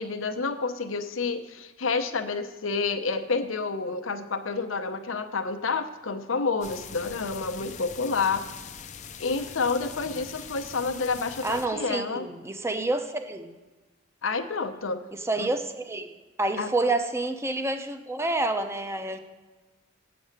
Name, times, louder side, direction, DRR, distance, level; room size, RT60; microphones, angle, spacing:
voice 1, 0.0-8.5 9.2-12.3 14.2-15.0 15.4-15.5 16.6-16.7, left 4 dB, 90° left, 9 dB, 0.8 m, -29 dB
sound 1, 6.6-11.7, left 7 dB, 40° left, 0.6 m, -42 dB
voice 2, 11.4-13.5 15.1-16.1 16.4-19.2, right 2 dB, 15° right, 7 dB, 0.7 m, -28 dB
8.4 x 6.9 x 6.6 m, 1.2 s
head